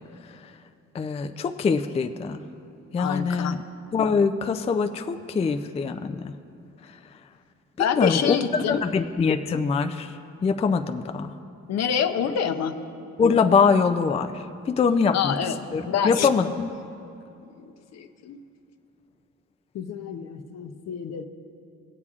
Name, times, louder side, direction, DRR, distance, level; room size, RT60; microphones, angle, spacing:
voice 1, 0.9-2.4 2.9-3.6 3.9-6.3 7.8-10.1 10.4-11.3 13.2-15.4 15.7-16.7, left 5 dB, 20° left, 8 dB, 0.3 m, -23 dB
voice 2, 3.0-3.6 7.8-8.8 11.7-12.8 15.1-15.6 15.9-16.3 17.5-18.4 19.7-21.3, left 8 dB, 60° left, 8 dB, 0.6 m, -27 dB
19.5 x 8.3 x 2.4 m, 2.6 s
cardioid pair, 90°, 30 cm